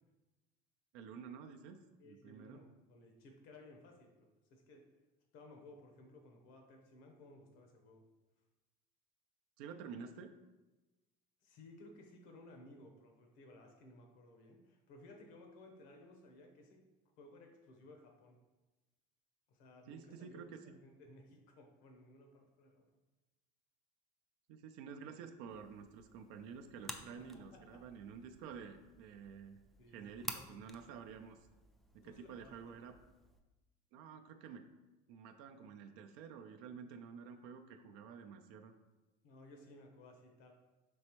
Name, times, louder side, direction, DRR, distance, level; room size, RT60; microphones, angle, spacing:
voice 1, 0.9-2.6 9.6-10.4 19.9-20.6 24.5-29.6 29.9-31.4 31.9-33.0 33.9-34.7 35.1-38.7, right 6 dB, 70° right, 6 dB, 0.5 m, -50 dB
voice 2, 2.0-4.9 5.3-8.0 11.4-16.8 17.2-18.4 19.5-22.9 27.2-27.8 29.8-30.1 32.0-32.8 39.2-40.5, left 2 dB, 70° left, 3 dB, 1.0 m, -58 dB
sound 1, 25.5-33.4, equal, ahead, 0.3 m, -52 dB
5.2 x 3.3 x 3.0 m, 1.1 s
supercardioid pair, 105°, 21 cm